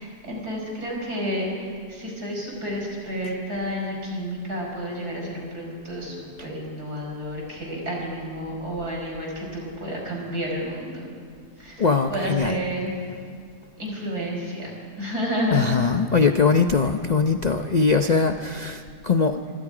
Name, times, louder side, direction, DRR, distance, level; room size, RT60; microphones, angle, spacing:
voice 1, 0.0-11.1 11.6-12.9 13.8-14.7 15.0-15.7, equal, 65° right, -1 dB, 6.1 m, -30 dB
voice 2, 11.8-12.6 15.5-19.4, left 5 dB, 45° left, 6 dB, 0.5 m, -21 dB
25.5 x 25.5 x 5.0 m, 2.1 s
omnidirectional pair, 1.8 m